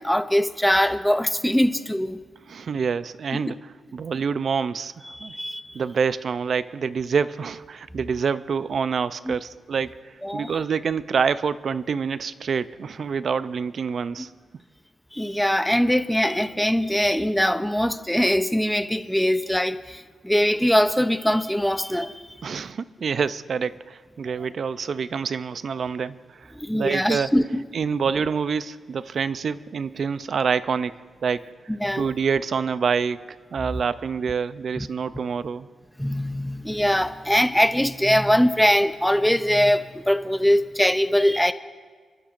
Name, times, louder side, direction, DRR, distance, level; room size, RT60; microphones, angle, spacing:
voice 1, 0.0-2.2 3.3-3.4 5.1-5.8 9.3-9.4 10.2-10.5 15.1-22.2 26.6-27.7 31.7-32.0 34.8-34.9 36.0-41.5, equal, 5° left, 10 dB, 0.6 m, -22 dB
voice 2, 2.5-4.9 5.2-5.3 5.7-10.0 10.3-14.3 22.4-26.5 26.7-27.3 27.7-31.5 32.0-33.2 33.5-35.7, right 6 dB, 55° right, 14 dB, 0.4 m, -26 dB
29.5 x 13.0 x 2.5 m, 1.5 s
wide cardioid pair, 120°, 0 cm